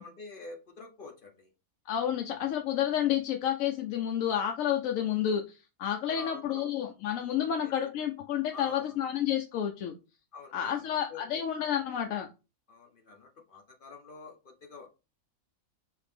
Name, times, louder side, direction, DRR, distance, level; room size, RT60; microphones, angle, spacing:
voice 1, 0.0-1.5 6.1-6.7 7.4-8.1 8.5-9.0 10.3-11.4 12.7-14.9, left 4 dB, 50° left, 2 dB, 0.7 m, -47 dB
voice 2, 1.9-9.9 10.5-12.3, left 10 dB, 75° left, 3 dB, 0.9 m, -30 dB
5.0 x 2.8 x 3.3 m, 0.29 s
omnidirectional pair, 1.5 m